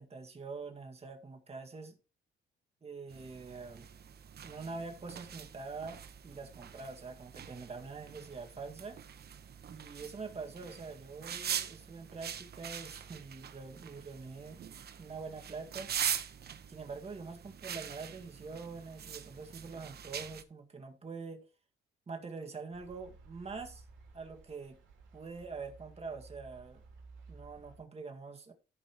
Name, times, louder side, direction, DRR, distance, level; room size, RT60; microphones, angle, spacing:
voice 1, 0.0-2.0 2.8-3.9 4.4-9.0 9.7-14.6 15.0-15.9 16.7-21.5 22.1-23.8 24.1-24.8 25.1-26.8 27.3-28.5, right 4 dB, 30° right, 1.9 m, -45 dB
sound 1, 3.1-20.4, right 8 dB, 55° right, 0.9 m, -43 dB
sound 2, 22.7-27.8, right 3 dB, 80° right, 3.2 m, -56 dB
14.5 x 5.5 x 3.0 m
cardioid pair, 90°, 20 cm